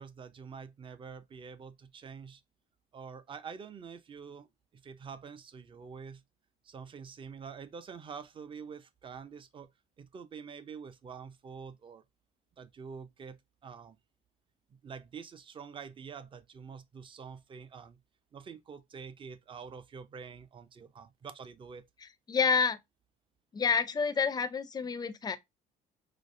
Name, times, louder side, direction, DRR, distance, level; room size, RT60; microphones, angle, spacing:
voice 1, 0.0-2.4 2.9-4.5 4.7-6.2 6.6-9.7 10.0-12.0 12.6-14.0 14.7-18.0 18.3-21.8, right 6 dB, 30° right, 0.5 m, -46 dB
voice 2, 22.3-22.8 23.5-25.4, left 5 dB, 25° left, 0.5 m, -28 dB
4.9 x 2.0 x 2.5 m
cardioid pair, 110°, 17 cm